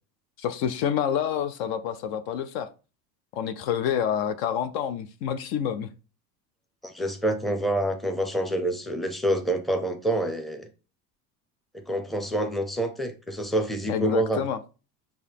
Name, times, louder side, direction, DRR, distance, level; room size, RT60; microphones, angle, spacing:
voice 1, 0.4-2.7 3.3-5.9 13.9-14.6, left 9 dB, 60° left, 0.5 m, -28 dB
voice 2, 6.8-10.7 11.7-14.4, right 1 dB, ahead, 0.6 m, -27 dB
5.4 x 2.3 x 3.4 m
supercardioid pair, 90°, 44 cm